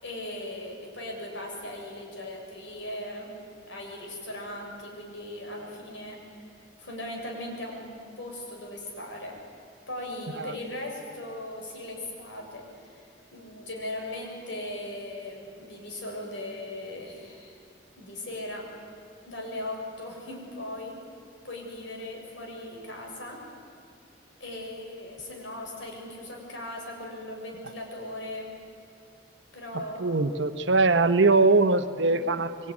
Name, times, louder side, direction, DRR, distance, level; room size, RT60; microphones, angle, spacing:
voice 1, 0.0-3.3 3.6-6.2 6.8-7.9 8.2-9.4 9.9-17.6 18.0-18.7 19.2-21.0 21.4-23.4 24.4-28.5 29.5-30.3 32.0-32.2, left 1 dB, 85° left, 1 dB, 6.6 m, -38 dB
voice 2, 30.0-32.7, right 3 dB, 80° right, 10 dB, 1.0 m, -22 dB
24.5 x 24.5 x 9.8 m, 2.4 s
head